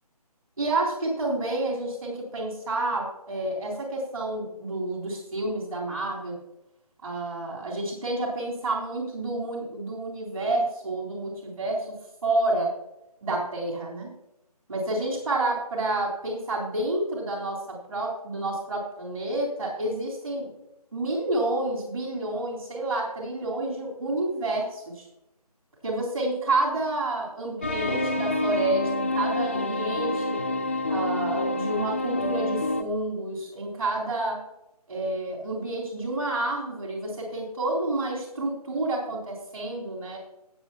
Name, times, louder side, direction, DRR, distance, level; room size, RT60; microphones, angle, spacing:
voice 1, 0.6-6.4 7.0-11.9 12.2-12.7 13.2-14.1 14.7-20.5 20.9-25.1 25.8-30.4 30.9-34.4 34.9-40.2, right 2 dB, 60° right, -2 dB, 3.9 m, -29 dB
sound 1, 27.6-32.8, left 2 dB, 20° left, 0.4 m, -27 dB
17.5 x 7.2 x 2.9 m, 0.87 s
figure-of-eight pair, 155°, 20 cm